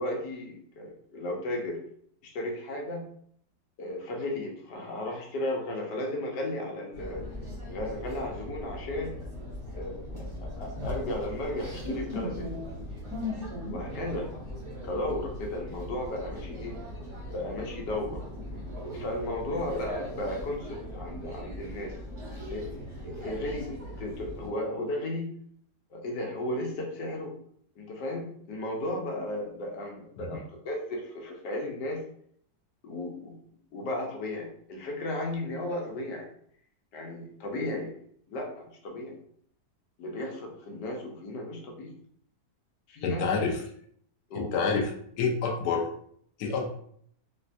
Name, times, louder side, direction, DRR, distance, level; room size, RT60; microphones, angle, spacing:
voice 1, 0.0-1.8 2.2-3.1 3.8-7.3 7.7-9.2 9.7-12.6 13.7-14.3 14.8-16.8 17.3-18.2 18.9-22.2 22.5-22.7 23.0-23.7 24.0-25.3 25.9-27.3 27.8-32.0 32.8-33.4 33.7-36.3 36.9-37.9 38.3-39.2 40.0-41.9 42.9-43.2 44.3-44.5, left 1 dB, 90° left, 0 dB, 1.4 m, -34 dB
sound 1, 6.9-24.5, left 1 dB, 40° right, 0.4 m, -39 dB
voice 2, 43.0-43.6 44.3-44.9 45.2-45.9 46.4-46.7, left 5 dB, 70° left, 0 dB, 1.1 m, -27 dB
4.1 x 2.2 x 2.5 m, 0.64 s
omnidirectional pair, 1.8 m